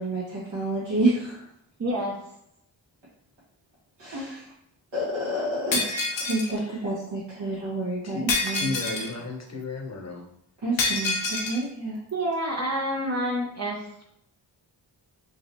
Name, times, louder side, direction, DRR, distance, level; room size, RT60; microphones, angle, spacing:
voice 1, 0.0-1.4 4.0-4.4 4.9-8.8 10.6-12.0, right 2 dB, 75° right, -10 dB, 1.4 m, -29 dB
voice 2, 1.8-2.2 4.1-4.3 12.1-14.0, equal, 35° right, -2 dB, 0.7 m, -28 dB
Shatter, 5.7-6.5 8.3-9.1 10.8-11.6, left 3 dB, 80° left, 0.7 m, -27 dB
voice 3, 6.1-6.9 8.0-8.2 8.5-10.2, left 3 dB, 35° left, 2 dB, 0.8 m, -35 dB
3.9 x 3.0 x 2.6 m, 0.74 s
cardioid pair, 60°, 44 cm